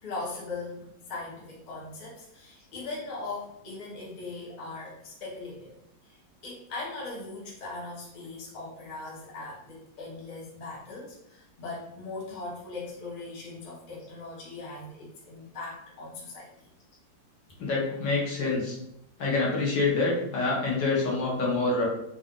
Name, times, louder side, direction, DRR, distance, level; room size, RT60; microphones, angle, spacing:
voice 1, 0.0-5.7 6.0-16.7, left 3 dB, 30° left, -5 dB, 1.0 m, -40 dB
voice 2, 17.6-18.8 19.2-21.9, left 3 dB, 70° left, -3 dB, 1.8 m, -26 dB
4.1 x 2.5 x 3.6 m, 0.79 s
omnidirectional pair, 2.0 m